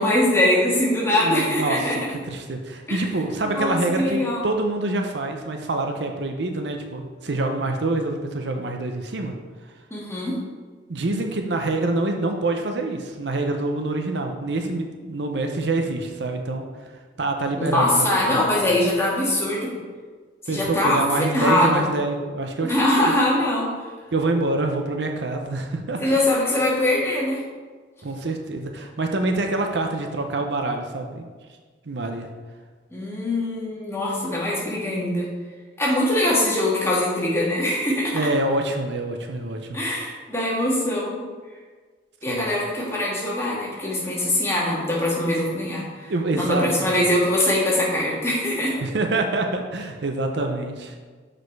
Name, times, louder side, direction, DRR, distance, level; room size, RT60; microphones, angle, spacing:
voice 1, 0.0-2.0 2.9-3.0 3.4-4.4 9.9-10.4 17.6-19.7 20.4-21.0 21.3-21.8 22.6-23.7 26.0-27.4 32.9-35.3 35.8-38.2 39.7-41.2 42.2-48.8, left 1 dB, 15° left, -5 dB, 1.8 m, -22 dB
voice 2, 1.2-2.0 2.2-9.3 10.9-16.6 17.2-18.4 20.5-23.1 24.1-26.2 28.0-31.3 31.9-32.3 38.1-39.8 42.3-42.5 46.1-47.1 48.8-50.9, right 2 dB, 65° right, 4 dB, 0.7 m, -26 dB
6.4 x 5.1 x 4.6 m, 1.5 s
head